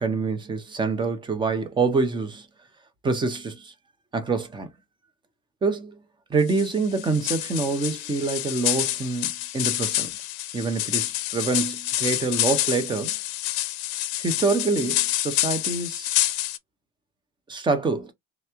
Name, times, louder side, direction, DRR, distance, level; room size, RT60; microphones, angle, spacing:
voice 1, 0.0-2.5 3.0-3.7 4.1-4.7 5.6-6.0 6.3-10.1 10.5-13.2 14.2-16.1 17.5-18.1, right 4 dB, 10° right, 0.5 m, -26 dB
sound 1, 6.5-16.6, left 15 dB, 55° left, 0.6 m, -27 dB
3.3 x 3.0 x 3.5 m
cardioid pair, 170°, 44 cm